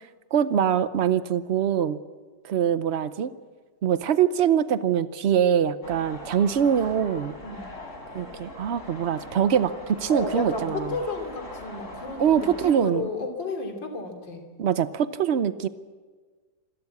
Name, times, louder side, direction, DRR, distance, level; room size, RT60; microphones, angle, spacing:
voice 1, 0.3-2.0 2.4-3.3 3.8-7.3 8.1-10.9 12.2-13.1 14.6-15.7, right 8 dB, 65° right, 13 dB, 0.6 m, -23 dB
sound 1, 5.8-12.7, left 2 dB, 40° left, 5.0 m, -41 dB
voice 2, 10.1-14.4, left 3 dB, 75° left, 3 dB, 3.6 m, -32 dB
27.5 x 13.0 x 8.5 m, 1.5 s
omnidirectional pair, 2.0 m